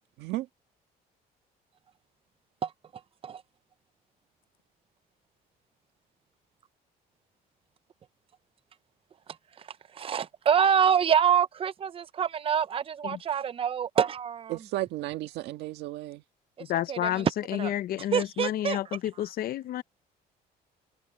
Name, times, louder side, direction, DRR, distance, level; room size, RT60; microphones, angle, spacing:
voice 1, 0.2-0.5 14.5-16.2, right 16 dB, 85° right, 1.7 m, -34 dB
voice 2, 9.9-14.5 16.6-17.7 18.1-18.8, right 8 dB, 35° right, 0.6 m, -26 dB
voice 3, 16.7-19.8, left 12 dB, 60° left, 0.7 m, -30 dB
open air
cardioid pair, 110°, 17 cm